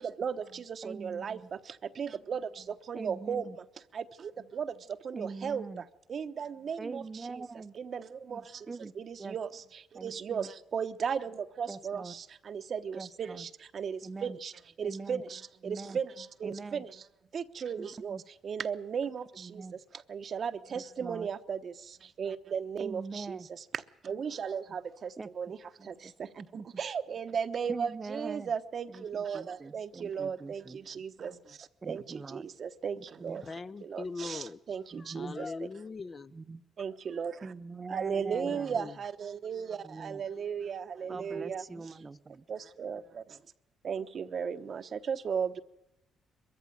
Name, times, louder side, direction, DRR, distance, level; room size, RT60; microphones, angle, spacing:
voice 1, 0.0-3.6 3.9-5.8 6.1-7.4 7.7-14.5 14.8-16.9 17.3-19.6 19.9-23.6 24.0-33.4 33.8-35.5 36.8-37.5 37.9-41.6 42.5-43.4 43.8-45.6, right 7 dB, 50° right, 1.0 m, -36 dB
voice 2, 0.8-1.5 2.9-3.6 5.1-5.8 6.8-7.8 8.3-8.9 9.2-9.4 9.9-10.5 11.7-12.1 12.9-13.5 14.0-14.4 14.8-15.2 15.6-16.0 16.4-16.9 17.8-18.2 19.3-19.8 20.7-21.3 22.8-23.5 25.2-25.3 25.8-26.1 26.4-26.7 27.7-28.5 28.9-30.8 31.8-32.5 33.0-33.5 34.9-35.4 36.3-36.6 37.4-38.8 39.8-40.3 41.1-42.5, right 4 dB, 30° right, 0.8 m, -43 dB
voice 3, 33.4-36.3 38.1-39.0 41.1-42.1, left 4 dB, 35° left, 0.8 m, -42 dB
22.0 x 14.5 x 9.2 m
cardioid pair, 95°, 0 cm